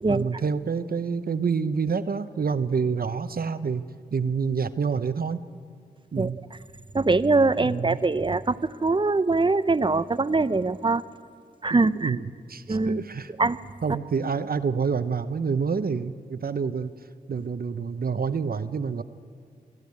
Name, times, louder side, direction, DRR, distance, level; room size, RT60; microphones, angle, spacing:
voice 1, 0.1-3.8 4.1-5.5 6.1-6.4 7.6-8.0 12.0-12.2 12.5-13.3 13.8-16.9 17.3-19.0, right 5 dB, 55° right, 12 dB, 0.8 m, -27 dB
voice 2, 6.2-6.6 6.9-11.0 11.6-12.1 12.7-13.0 13.4-13.6, right 3 dB, 25° right, 15 dB, 0.7 m, -23 dB
22.5 x 12.5 x 9.7 m, 2.2 s
cardioid pair, 50°, 18 cm